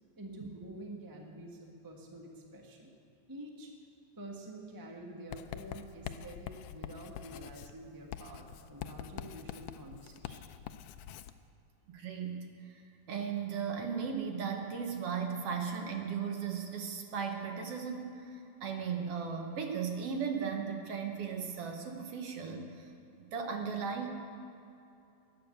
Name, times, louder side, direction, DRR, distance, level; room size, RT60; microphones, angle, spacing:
voice 1, 0.2-2.9 3.3-3.7 4.2-10.5, right 1 dB, 20° right, 1 dB, 0.5 m, -48 dB
Writing, 5.3-11.4, left 10 dB, 85° left, 1.4 m, -45 dB
voice 2, 11.9-24.1, right 6 dB, 60° right, 3 dB, 2.0 m, -37 dB
12.5 x 10.5 x 7.9 m, 2.7 s
omnidirectional pair, 3.3 m